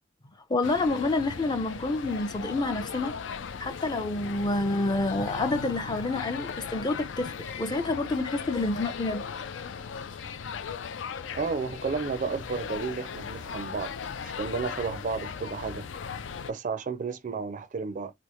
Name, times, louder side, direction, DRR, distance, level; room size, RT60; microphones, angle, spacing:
voice 1, 0.5-3.1 3.6-9.2, left 2 dB, 25° left, 0.5 m, -28 dB
sound 1, 0.6-16.5, left 6 dB, 75° left, 0.4 m, -38 dB
voice 2, 11.3-13.9 14.2-15.9 16.5-18.1, right 5 dB, 45° right, 0.4 m, -32 dB
3.4 x 2.6 x 3.0 m
head